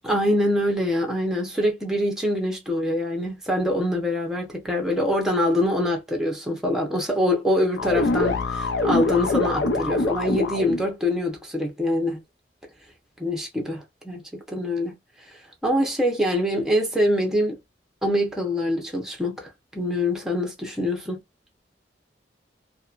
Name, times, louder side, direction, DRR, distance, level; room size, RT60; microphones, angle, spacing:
voice 1, 0.0-12.2 13.2-15.0 15.6-17.6 18.0-21.2, left 1 dB, 5° right, 0.8 m, -24 dB
sound 1, 7.8-10.9, left 2 dB, 75° left, 0.6 m, -24 dB
2.8 x 2.2 x 2.4 m
head